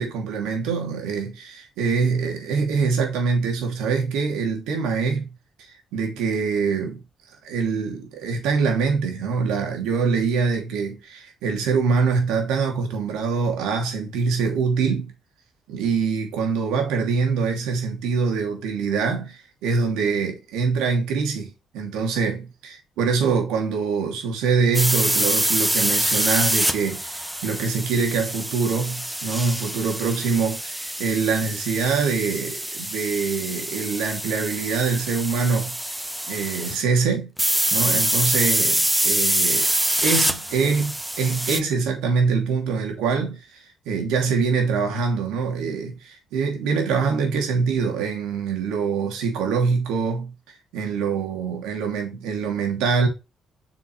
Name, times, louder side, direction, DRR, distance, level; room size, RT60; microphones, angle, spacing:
voice 1, 0.0-5.3 5.9-7.0 7.4-15.1 15.7-22.4 23.0-35.8 36.3-37.3 37.7-39.7 40.0-50.3 50.7-53.1, right 5 dB, 85° right, 2.9 m, -24 dB
sound 1, 24.7-36.8 37.4-41.6, right 1 dB, 5° right, 0.9 m, -25 dB
7.3 x 5.9 x 3.3 m
supercardioid pair, 70°, 0 cm